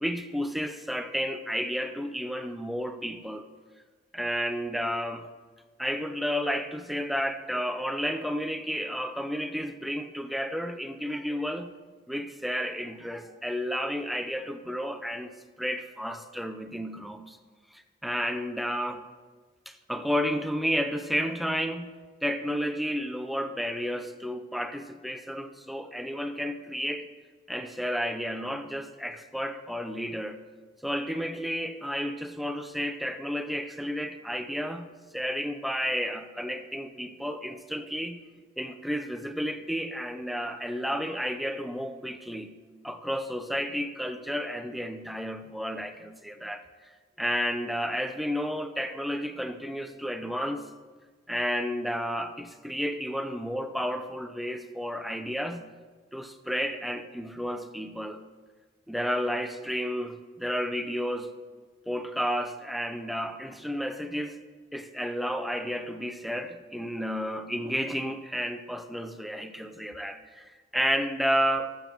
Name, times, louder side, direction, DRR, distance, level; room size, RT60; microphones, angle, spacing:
voice 1, 0.0-3.5 4.1-5.3 5.8-11.7 12.1-15.3 15.6-17.4 17.7-19.0 19.7-27.1 27.5-30.4 30.8-34.9 35.1-38.2 38.6-42.5 42.8-46.6 47.2-50.7 51.3-55.6 56.1-58.2 58.9-61.3 61.9-64.4 64.7-71.8, equal, ahead, 8 dB, 0.5 m, -32 dB
14.0 x 7.0 x 4.5 m, 1.4 s
head